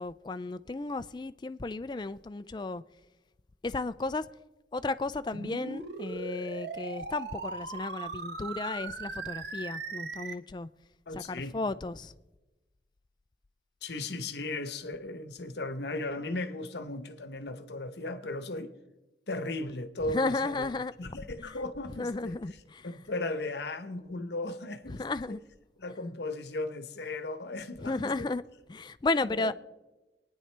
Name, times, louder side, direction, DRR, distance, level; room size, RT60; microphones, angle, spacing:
voice 1, 0.0-2.8 3.6-4.3 4.7-10.7 11.1-12.1 20.1-20.9 21.4-21.5 22.0-22.9 24.9-25.4 27.8-28.4 28.7-29.5, left 3 dB, 25° left, 0.3 m, -33 dB
sound 1, 5.3-10.3, right 3 dB, 75° right, 1.0 m, -39 dB
voice 2, 11.1-11.5 13.8-18.7 19.3-20.7 21.0-22.3 22.8-25.0 25.3-25.4 25.8-28.3 29.2-29.5, left 2 dB, 70° left, 0.9 m, -36 dB
24.0 x 9.8 x 3.3 m
head